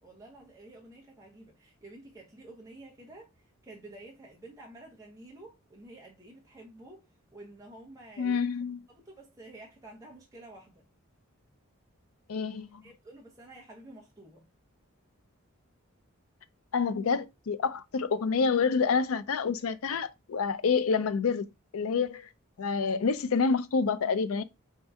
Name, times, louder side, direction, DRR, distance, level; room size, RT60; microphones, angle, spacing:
voice 1, 0.0-7.0 7.3-8.5 8.9-10.9 12.8-14.5 19.6-19.7, right 2 dB, 15° right, 0.7 m, -50 dB
voice 2, 8.2-8.8 12.3-12.8 16.7-21.5 21.7-22.3 22.6-24.4, left 5 dB, 75° left, 0.4 m, -28 dB
4.5 x 2.7 x 3.4 m
head